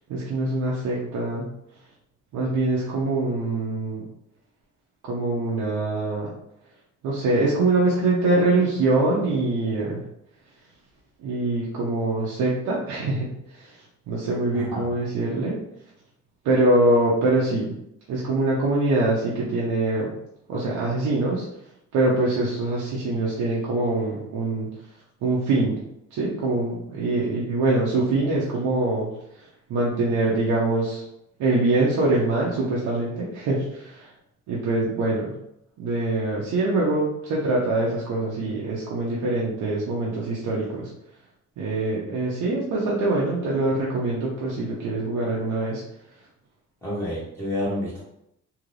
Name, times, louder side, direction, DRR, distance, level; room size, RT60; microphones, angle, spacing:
voice 1, 0.1-1.5 2.3-4.0 5.0-6.3 7.0-10.0 11.2-13.3 14.1-15.6 16.4-17.7 18.1-20.1 20.5-21.4 21.9-24.7 25.2-25.8 26.1-29.1 29.7-31.0 31.4-34.1 34.5-35.3 35.8-40.9 41.6-45.8, right 2 dB, 85° right, -5 dB, 0.7 m, -24 dB
voice 2, 14.5-14.9 46.8-48.0, left 1 dB, 10° left, -10 dB, 1.3 m, -29 dB
2.8 x 2.4 x 3.2 m, 0.81 s
cardioid pair, 90°, 30 cm